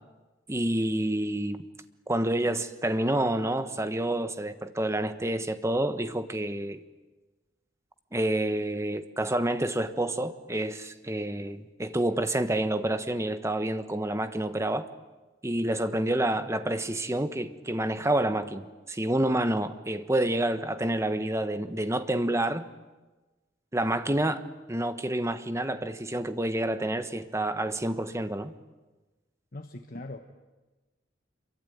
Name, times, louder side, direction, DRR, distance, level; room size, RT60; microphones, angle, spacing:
voice 1, 0.5-1.6 2.1-6.8 8.1-14.8 15.4-22.6 23.7-24.4 24.7-28.5, right 1 dB, 15° right, 1.3 m, -28 dB
voice 2, 29.5-30.2, left 2 dB, 50° left, 1.3 m, -40 dB
27.0 x 23.5 x 9.4 m
head